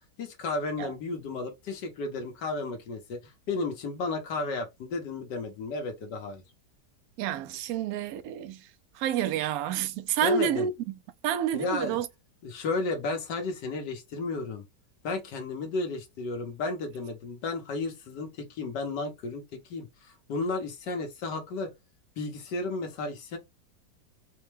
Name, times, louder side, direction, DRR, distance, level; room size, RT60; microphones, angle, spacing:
voice 1, 0.2-6.4 10.2-10.7 11.5-12.0 12.4-14.6 15.0-21.7 22.2-23.4, left 3 dB, 80° left, 1.5 m, -33 dB
voice 2, 7.2-8.7 8.9-11.0 11.2-12.1, right 8 dB, 70° right, 0.9 m, -29 dB
4.2 x 2.2 x 3.1 m
omnidirectional pair, 1.8 m